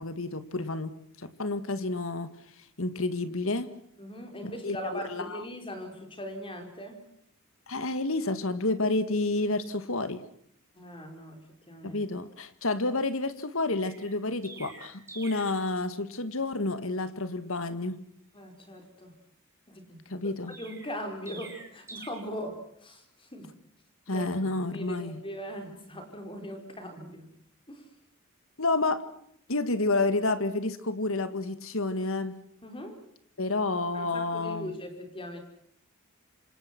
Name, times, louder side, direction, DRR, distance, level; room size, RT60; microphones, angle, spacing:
voice 1, 0.0-2.4 2.8-3.8 4.4-5.4 7.7-10.2 11.8-18.0 20.1-20.5 24.1-25.2 28.6-29.0 29.5-32.3 33.4-34.8, left 2 dB, 65° left, 12 dB, 2.0 m, -30 dB
voice 2, 4.0-7.0 10.7-11.4 11.7-12.0 18.3-19.1 19.7-20.0 20.5-23.5 24.1-24.3 24.7-27.3 27.7-27.8 32.6-33.0 33.9-35.4, equal, 25° left, 5 dB, 5.3 m, -40 dB
Chirp tweet, 13.8-15.6 20.5-22.1, right 3 dB, 15° right, 5.6 m, -46 dB
27.5 x 26.0 x 6.2 m, 0.71 s
head